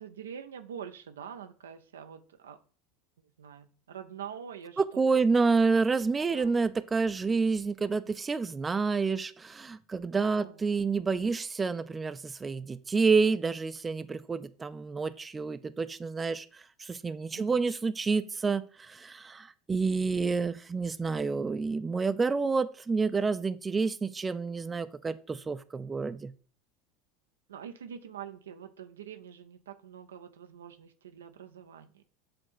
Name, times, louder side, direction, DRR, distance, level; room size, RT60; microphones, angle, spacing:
voice 1, 0.0-2.6 3.4-4.8 5.1-5.2 5.5-5.7 6.3-6.5 10.4-10.6 17.3-17.6 27.5-32.0, right 8 dB, 80° right, 8 dB, 0.6 m, -45 dB
voice 2, 4.8-26.3, right 4 dB, 20° right, 12 dB, 0.5 m, -29 dB
7.8 x 3.6 x 6.2 m, 0.40 s
hypercardioid pair, 75°, 0 cm